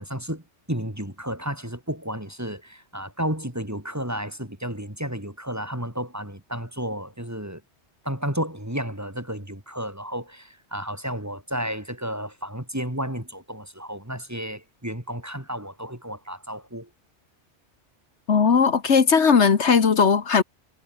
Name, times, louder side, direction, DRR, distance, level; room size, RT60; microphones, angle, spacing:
voice 1, 0.0-7.6 8.0-16.9, equal, 15° right, 3.3 m, -32 dB
voice 2, 18.3-20.4, left 6 dB, 75° left, 1.7 m, -18 dB
omnidirectional pair, 1.2 m